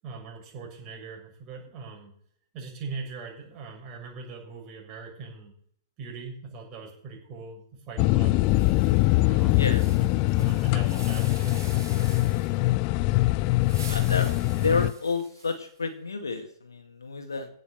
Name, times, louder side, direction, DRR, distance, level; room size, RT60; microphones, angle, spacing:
voice 1, 0.0-2.1 2.5-5.5 6.0-8.4 9.2-9.7 10.0-11.6, right 4 dB, 30° right, -1 dB, 6.9 m, -41 dB
Ambient Droning, 8.0-14.9, left 19 dB, 35° left, 0.5 m, -23 dB
sound 1, 8.4-12.6 13.5-15.8, right 5 dB, 65° right, 3.8 m, -47 dB
voice 2, 13.9-17.5, left 4 dB, 75° left, 6 dB, 2.2 m, -30 dB
16.5 x 6.8 x 6.9 m, 0.62 s
figure-of-eight pair, 110°, 2 cm